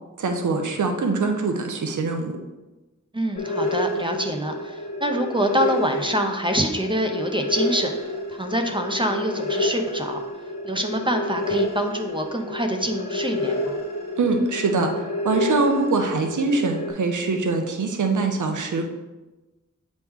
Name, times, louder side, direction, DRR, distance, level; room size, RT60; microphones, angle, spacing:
voice 1, 0.2-2.4 14.2-18.9, right 3 dB, 85° right, 4 dB, 0.7 m, -23 dB
voice 2, 3.1-10.2 10.6-13.8, equal, 15° right, 4 dB, 0.5 m, -26 dB
sound 1, 3.4-16.9, left 1 dB, 60° left, 1.3 m, -29 dB
8.4 x 3.1 x 3.5 m, 1.1 s
wide cardioid pair, 95°, 30 cm